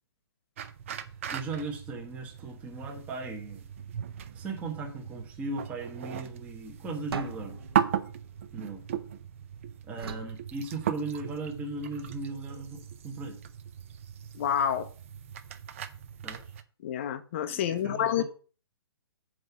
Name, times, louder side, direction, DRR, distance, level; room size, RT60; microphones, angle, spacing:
sound 1, 0.6-16.6, right 9 dB, 30° right, 0.6 m, -37 dB
voice 1, 1.3-3.7 4.3-7.6 8.5-8.8 9.8-13.4 16.2-16.5 17.5-18.2, right 3 dB, 10° right, 1.1 m, -37 dB
sound 2, 7.1-9.3 10.0-11.4, right 5 dB, 65° right, 1.2 m, -42 dB
voice 2, 14.3-14.9 16.8-18.2, left 9 dB, 30° left, 0.7 m, -28 dB
7.6 x 4.8 x 6.8 m
hypercardioid pair, 165°, 14 cm